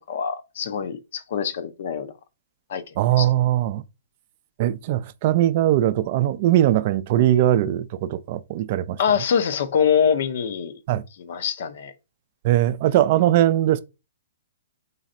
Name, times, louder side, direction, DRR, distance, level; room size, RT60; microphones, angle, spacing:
voice 1, 0.1-2.1 2.7-3.3 9.0-10.7 11.2-11.9, left 7 dB, 60° left, 0.5 m, -24 dB
voice 2, 3.0-3.8 4.6-9.0 10.9-11.0 12.4-13.8, right 13 dB, 45° right, 0.3 m, -20 dB
3.9 x 3.2 x 2.6 m
hypercardioid pair, 135°, 0 cm